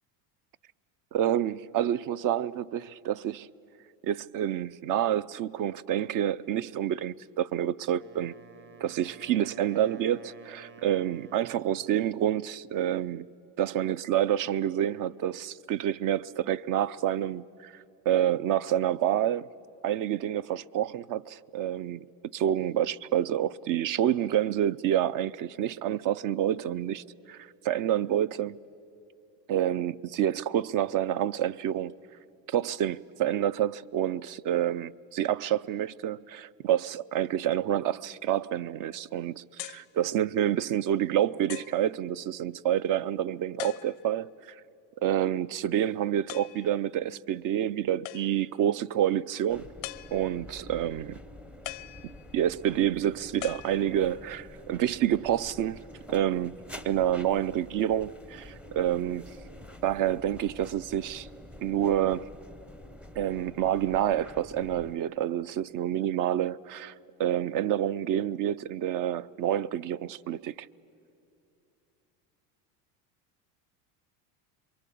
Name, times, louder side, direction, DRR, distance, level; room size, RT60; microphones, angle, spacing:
voice 1, 1.1-3.5 4.0-8.3 8.8-13.3 13.6-17.7 18.1-19.5 19.8-22.1 22.3-28.6 29.5-31.9 32.5-44.6 45.0-49.6 50.1-51.2 52.3-55.8 56.1-59.4 59.8-61.3 61.6-62.3 63.2-66.9 67.2-70.7, right 11 dB, 45° right, 0.5 m, -28 dB
Wind instrument woodwind instrument, 8.0-12.1, right 4 dB, 25° right, 0.9 m, -52 dB
sound 1, 39.6-39.9 40.6-40.7 41.5-41.9 43.6-44.2 46.3-46.7 48.0-48.6 49.8-50.5 51.6-52.5 53.4-54.2, left 20 dB, 90° left, 0.7 m, -41 dB
sound 2, 49.5-65.0, left 1 dB, 5° right, 0.6 m, -48 dB
27.0 x 23.0 x 8.5 m
supercardioid pair, 100°, 48 cm